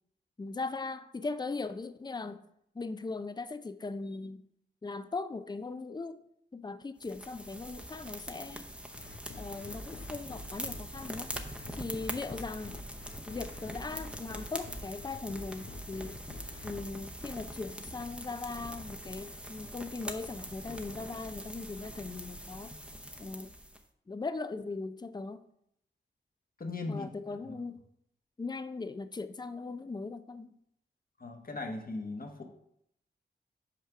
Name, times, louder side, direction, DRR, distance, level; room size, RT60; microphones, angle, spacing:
voice 1, 0.4-2.4 2.7-4.4 4.8-6.2 6.5-8.7 9.4-11.3 11.8-12.8 13.3-16.2 16.6-22.7 23.2-23.5 24.1-25.4 26.9-27.9 28.4-30.5, left 3 dB, 20° left, 12 dB, 0.5 m, -39 dB
sound 1, 7.0-23.8, equal, 5° right, 0.8 m, -43 dB
sound 2, 8.9-16.8, left 2 dB, 75° left, 1.0 m, -47 dB
voice 2, 26.6-27.6 31.2-32.4, left 3 dB, 45° left, 3 dB, 1.3 m, -39 dB
5.8 x 4.6 x 5.7 m, 0.75 s
cardioid pair, 55°, 20 cm